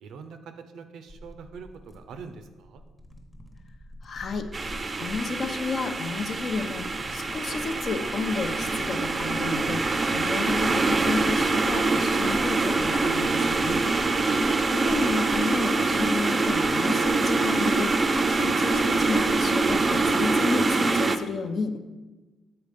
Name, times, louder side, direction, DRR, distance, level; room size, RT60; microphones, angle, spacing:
voice 1, 0.0-2.8 14.2-15.0, right 5 dB, 75° right, 9 dB, 0.6 m, -44 dB
sound 1, 1.1-20.4, left 1 dB, 15° left, 0.9 m, -44 dB
voice 2, 4.0-4.5 5.0-13.8 14.1-21.8, left 4 dB, 55° left, 7 dB, 0.6 m, -32 dB
sound 2, 4.5-21.2, right 3 dB, 30° right, 0.4 m, -24 dB
6.8 x 4.1 x 5.1 m, 1.2 s
cardioid pair, 90°, 0 cm